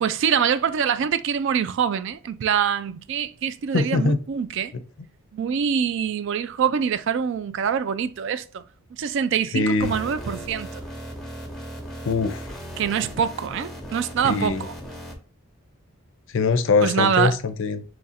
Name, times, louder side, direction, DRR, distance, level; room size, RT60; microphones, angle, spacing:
voice 1, 0.0-4.7 5.3-8.6 9.0-10.8 12.8-14.7 16.8-17.4, right 7 dB, 55° right, 0.3 m, -24 dB
voice 2, 3.7-4.2 9.5-9.9 12.0-12.5 14.2-14.6 16.3-17.8, left 3 dB, 60° left, 0.4 m, -22 dB
sound 1, 9.8-15.1, equal, ahead, 0.7 m, -37 dB
3.1 x 2.5 x 4.1 m
head